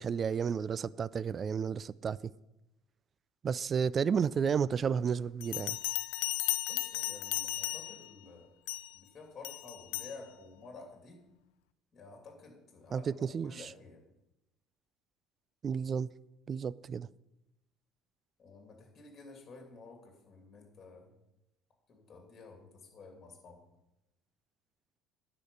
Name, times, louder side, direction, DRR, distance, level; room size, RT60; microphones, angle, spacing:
voice 1, 0.0-2.2 3.4-5.8 12.9-13.6 15.6-16.1 16.5-17.1, right 6 dB, 40° right, 0.3 m, -32 dB
Bell, 5.4-8.1 8.7-9.0 9.4-10.2, left 19 dB, 70° left, 0.3 m, -35 dB
voice 2, 6.7-8.5 8.9-11.2 11.9-14.0 18.4-21.1 21.9-23.6, left 4 dB, 35° left, 2.7 m, -52 dB
9.9 x 5.0 x 7.1 m
hypercardioid pair, 65°, 0 cm